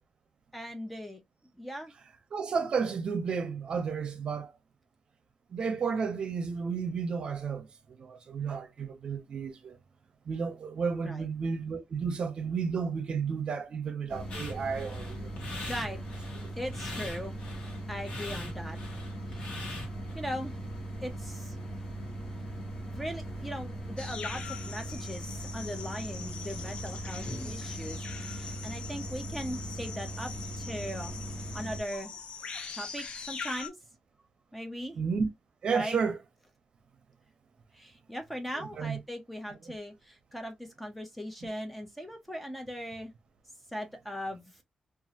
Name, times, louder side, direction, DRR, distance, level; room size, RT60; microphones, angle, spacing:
voice 1, 0.5-1.2 1.6-1.9 11.0-11.3 15.7-16.0 16.6-17.3 17.9-18.8 19.3-19.6 20.1-20.6 21.0-21.5 22.4-22.5 22.9-30.3 30.6-31.2 31.5-32.1 32.7-33.7 34.5-35.0 35.7-36.0 37.7-43.1 43.7-44.5, equal, 5° left, 0.5 m, -39 dB
voice 2, 2.3-4.5 5.5-9.8 10.3-15.3 35.0-35.3 35.6-36.2 38.6-39.0, right 5 dB, 50° right, 0.7 m, -32 dB
sound 1, 14.1-31.8, right 1 dB, 40° left, 1.1 m, -39 dB
sound 2, 14.3-20.1, left 2 dB, 80° left, 1.1 m, -42 dB
sound 3, 24.0-33.7, left 5 dB, 60° left, 0.5 m, -43 dB
2.9 x 2.4 x 2.7 m
wide cardioid pair, 160°, 2 cm